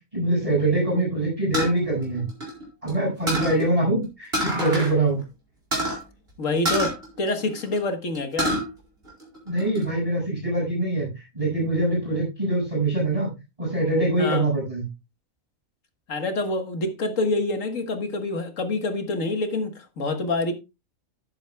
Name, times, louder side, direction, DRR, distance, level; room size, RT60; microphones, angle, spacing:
voice 1, 0.1-2.3 2.8-5.2 9.4-13.3 13.6-14.8, right 2 dB, 25° right, 6.8 m, -24 dB
sound 1, 1.5-2.9 3.3-3.6 4.3-4.9 5.2-5.3 5.7-6.0 6.6-7.8 8.1-8.6 9.1-9.8, right 1 dB, 45° right, 5.0 m, -26 dB
voice 2, 6.4-8.6 14.2-14.5 16.1-20.5, left 2 dB, 70° left, 1.9 m, -26 dB
12.5 x 10.5 x 2.3 m
omnidirectional pair, 1.4 m